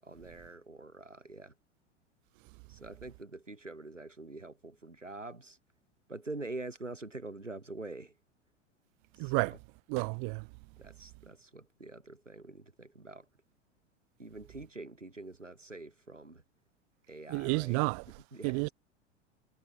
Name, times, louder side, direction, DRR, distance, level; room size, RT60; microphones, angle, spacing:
voice 1, 0.0-1.5 2.7-5.6 6.1-8.2 9.2-9.6 10.8-13.3 14.2-16.4 17.1-18.7, right 2 dB, 85° right, 7.8 m, -45 dB
voice 2, 9.2-9.5 9.9-10.4 17.3-18.0 18.4-18.7, right 40 dB or more, 45° right, 2.6 m, -30 dB
figure-of-eight pair, 90°, 36 cm